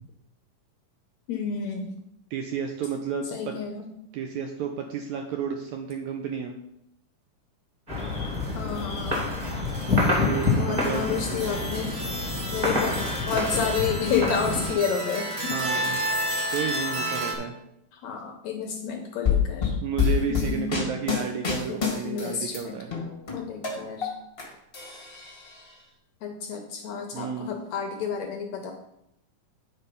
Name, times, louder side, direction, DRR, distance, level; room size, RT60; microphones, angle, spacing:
voice 1, 1.3-1.9 3.3-3.9 8.6-9.3 10.5-12.0 12.5-12.9 13.3-15.6 17.9-19.8 20.3-20.9 21.7-22.8 23.3-24.1 26.2-28.7, left 6 dB, 80° left, 3 dB, 1.7 m, -30 dB
voice 2, 2.3-3.5 4.1-6.5 9.7-9.9 10.1-11.4 15.5-16.0 16.5-17.5 19.8-22.9 27.1-27.5, right 7 dB, 90° right, 4 dB, 1.6 m, -32 dB
sound 1, 7.9-14.7, left 3 dB, 20° right, 1.3 m, -27 dB
sound 2, 8.4-17.3, right 1 dB, 55° right, 1.4 m, -32 dB
sound 3, 19.2-22.6 22.9-24.4 24.7-25.6, left 7 dB, 45° left, 0.7 m, -26 dB
9.6 x 4.0 x 5.4 m, 0.80 s
omnidirectional pair, 4.0 m